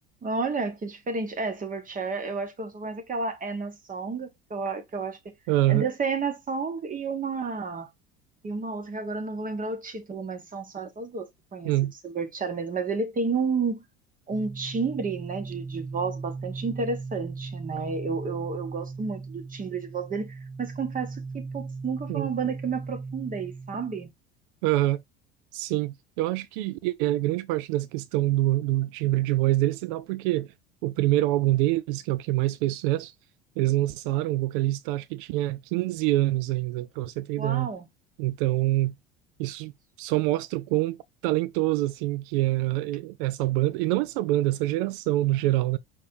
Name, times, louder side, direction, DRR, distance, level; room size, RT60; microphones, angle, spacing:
voice 1, 0.2-5.3 5.7-7.9 8.4-11.7 12.0-13.8 14.3-24.1 37.4-37.9, right 4 dB, 25° right, 1.2 m, -31 dB
voice 2, 5.5-5.8 11.6-11.9 22.1-22.3 24.6-25.0 25.5-30.5 30.8-33.1 33.6-37.7 38.2-38.9 39.4-39.7 40.0-41.0 41.2-45.8, right 16 dB, 55° right, 0.4 m, -25 dB
sound 1, 14.3-24.1, right 4 dB, ahead, 0.9 m, -38 dB
5.3 x 3.3 x 2.6 m
figure-of-eight pair, 65°, 32 cm